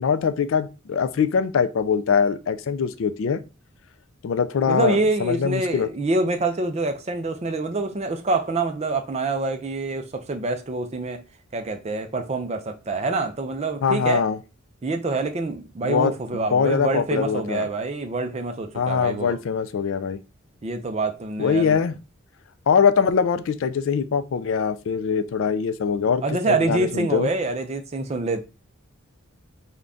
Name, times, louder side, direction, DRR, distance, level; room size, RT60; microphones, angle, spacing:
voice 1, 0.0-3.4 4.2-5.9 13.8-14.4 15.8-17.7 18.7-20.2 21.4-21.9 22.7-27.3, left 6 dB, 60° left, 0.3 m, -22 dB
voice 2, 4.7-11.2 11.5-14.2 14.8-19.4 20.6-21.8 26.2-28.4, right 3 dB, 30° right, 0.4 m, -26 dB
3.8 x 2.2 x 3.5 m
head